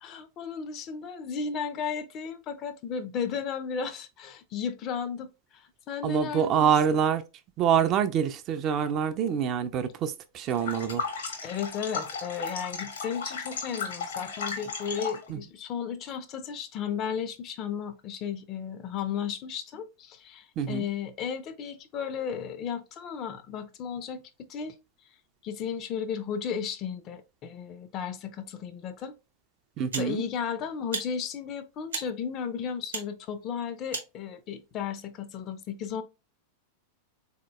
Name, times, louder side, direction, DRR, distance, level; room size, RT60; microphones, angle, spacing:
voice 1, 0.0-6.7 11.2-24.2 24.5-24.8 25.4-29.2 29.9-36.0, left 7 dB, 35° left, 0.4 m, -34 dB
voice 2, 6.0-7.2 7.6-11.0 15.3-15.4 20.6-20.9 29.8-30.2, right 8 dB, 35° right, 0.3 m, -26 dB
sound 1, 10.5-15.3, left 5 dB, 65° left, 0.9 m, -35 dB
sound 2, 29.0-29.1 29.9-30.1 30.9-31.1 31.9-32.1 32.9-33.1 33.9-34.1, right 5 dB, 70° right, 0.7 m, -35 dB
3.8 x 2.8 x 2.3 m
figure-of-eight pair, 90°, 0 cm